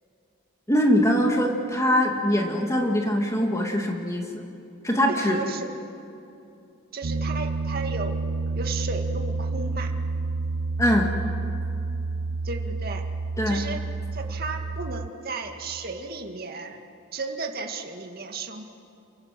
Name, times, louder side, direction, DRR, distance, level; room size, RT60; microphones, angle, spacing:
voice 1, 0.7-4.2 4.8-5.4 10.8-11.1 13.4-13.6, equal, 15° left, 2 dB, 2.0 m, -22 dB
voice 2, 5.1-5.7 6.9-8.2 8.6-9.9 12.4-13.0 13.5-13.8 14.1-16.8 17.1-18.7, right 3 dB, 45° right, 4 dB, 2.1 m, -34 dB
Piano, 7.0-15.1, right 3 dB, 80° right, 0.9 m, -29 dB
28.5 x 24.0 x 7.7 m, 2.7 s
head